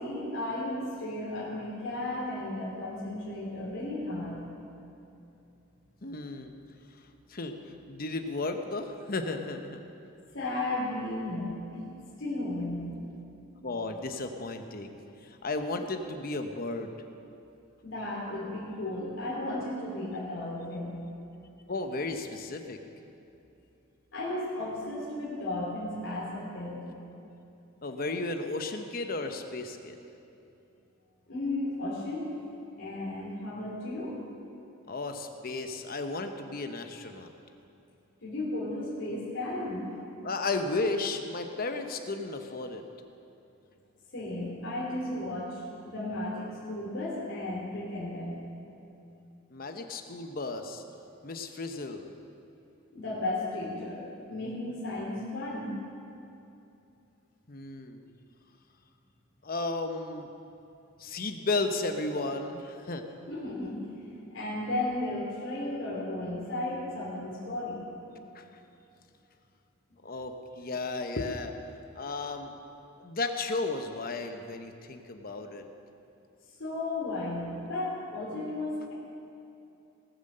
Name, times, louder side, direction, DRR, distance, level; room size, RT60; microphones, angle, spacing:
voice 1, 0.0-4.4 10.3-11.9 12.2-13.0 17.8-21.1 24.1-26.9 31.3-32.3 32.8-34.2 38.2-39.9 44.1-48.4 52.9-55.8 63.3-63.8 64.3-67.9 76.6-78.9, left 1 dB, 65° left, -7 dB, 2.9 m, -34 dB
voice 2, 6.0-6.5 7.3-7.5 7.9-9.8 13.6-16.9 21.7-22.8 27.8-30.0 34.9-37.3 40.2-42.8 49.5-50.8 51.2-52.2 57.5-58.0 59.4-60.3 61.0-63.0 68.3-68.5 70.0-71.6 71.9-72.5 73.0-75.6, left 3 dB, 45° left, 6 dB, 0.9 m, -34 dB
19.0 x 7.4 x 6.7 m, 2.8 s
head